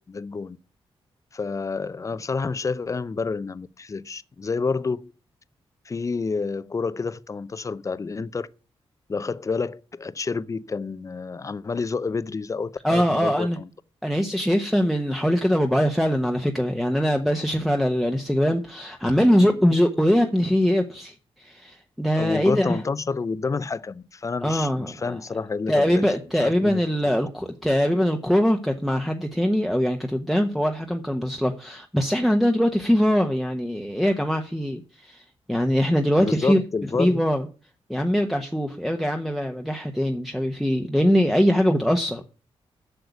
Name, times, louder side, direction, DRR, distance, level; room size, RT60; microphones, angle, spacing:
voice 1, 0.1-0.6 1.3-5.1 5.9-8.5 9.1-13.7 19.4-19.6 22.2-26.0 26.4-27.1 36.2-37.2, left 4 dB, 30° left, 0.6 m, -29 dB
voice 2, 12.8-13.6 14.0-22.8 24.4-25.2 25.7-37.4 37.9-42.2, equal, ahead, 1.0 m, -22 dB
8.0 x 6.6 x 8.3 m
cardioid pair, 95°, 11 cm